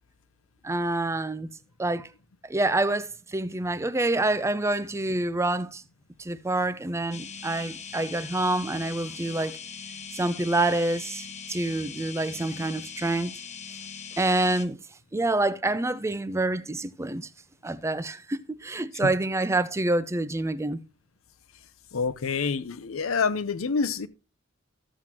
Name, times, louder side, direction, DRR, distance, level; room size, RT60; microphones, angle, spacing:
voice 1, 0.6-1.5 1.8-2.1 2.4-5.8 6.2-9.6 10.1-13.3 14.2-14.8 15.1-17.3 17.6-20.8, right 2 dB, 15° right, 0.5 m, -27 dB
sound 1, 7.1-14.7, left 6 dB, 35° left, 1.0 m, -41 dB
voice 2, 21.9-24.1, left 5 dB, 80° left, 0.7 m, -27 dB
13.5 x 7.5 x 2.9 m
head